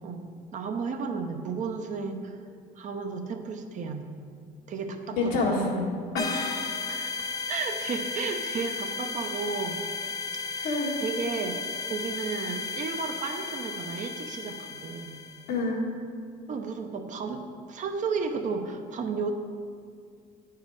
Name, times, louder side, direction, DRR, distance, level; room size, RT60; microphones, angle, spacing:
voice 1, 0.0-2.4 2.8-4.2 4.7-5.6 6.9-7.1 7.5-9.8 10.5-11.6 11.8-15.2 16.5-19.3, right 5 dB, 50° right, 5 dB, 0.8 m, -33 dB
voice 2, 5.2-5.8 6.2-6.9 10.6-11.0 15.5-15.9, left 2 dB, 90° left, -3 dB, 1.7 m, -28 dB
sound 1, 6.2-15.5, left 4 dB, 20° left, 0.6 m, -34 dB
9.4 x 4.8 x 4.8 m, 2.3 s
cardioid pair, 110°, 17 cm